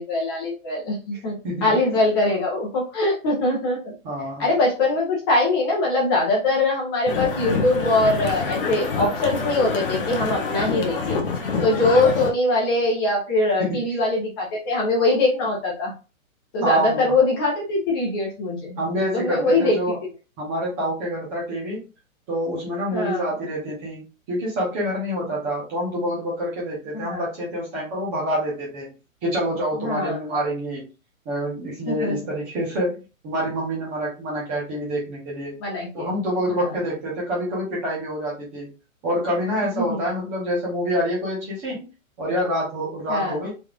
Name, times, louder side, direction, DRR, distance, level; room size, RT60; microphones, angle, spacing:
voice 1, 0.0-3.9 4.4-11.2 11.6-15.9 16.5-18.8 19.1-19.9 22.9-23.3 26.9-27.2 29.8-30.2 31.9-32.2 35.6-36.1 36.5-36.8 39.6-40.0 43.1-43.3, left 2 dB, 15° left, -3 dB, 1.0 m, -22 dB
voice 2, 1.4-2.0 4.0-4.5 13.6-13.8 16.6-17.1 18.8-20.0 20.4-21.8 22.3-28.9 29.2-30.9 31.2-35.6 35.9-38.7 39.0-41.9 42.2-43.5, equal, 10° right, -5 dB, 0.8 m, -27 dB
sound 1, 7.1-12.3, left 4 dB, 40° left, 0.7 m, -26 dB
3.5 x 3.2 x 2.4 m, 0.30 s
hypercardioid pair, 175°, 41 cm